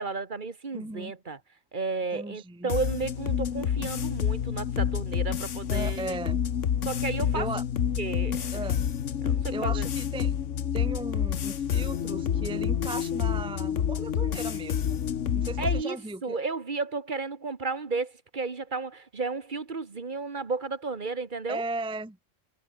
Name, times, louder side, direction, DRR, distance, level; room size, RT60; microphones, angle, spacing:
voice 1, 0.0-1.4 1.7-6.1 6.8-7.5 8.0-8.6 9.2-9.9 15.6-21.6, right 4 dB, 40° right, 1.5 m, -33 dB
voice 2, 0.7-1.1 2.1-2.7 5.7-6.4 7.3-7.6 8.5-8.9 9.5-10.3 10.7-15.0 15.4-16.4 21.5-22.2, right 2 dB, 5° right, 0.7 m, -36 dB
sound 1, 2.7-15.8, left 8 dB, 75° left, 1.4 m, -28 dB
omnidirectional pair, 1.3 m